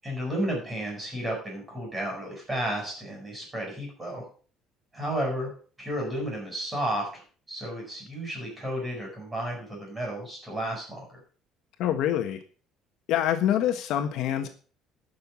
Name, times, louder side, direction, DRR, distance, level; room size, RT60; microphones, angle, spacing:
voice 1, 0.0-4.2 4.9-5.5 5.8-11.0, right 1 dB, 15° right, 0 dB, 7.5 m, -32 dB
voice 2, 11.8-12.4 13.1-14.5, left 11 dB, 60° left, 7 dB, 1.4 m, -25 dB
11.5 x 6.8 x 7.1 m, 0.40 s
cardioid pair, 160°, 0 cm